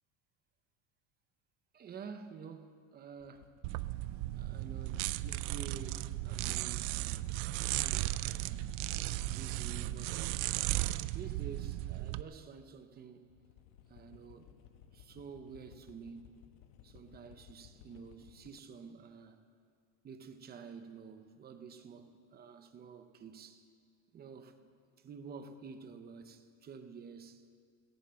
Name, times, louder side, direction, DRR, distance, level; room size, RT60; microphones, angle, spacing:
voice 1, 1.7-3.5 4.4-7.4 7.7-8.7 9.3-10.6 11.1-13.3 13.9-14.5 14.9-16.4 16.8-19.4 20.0-23.6 24.1-24.6 25.0-27.4, right 5 dB, 20° right, 0.7 m, -50 dB
sound 1, 3.2-11.0 13.3-18.6, left 9 dB, 70° left, 1.1 m, -59 dB
sound 2, 3.6-12.2, right 17 dB, 60° right, 0.5 m, -36 dB
16.5 x 11.5 x 7.6 m
cardioid pair, 170°, 47 cm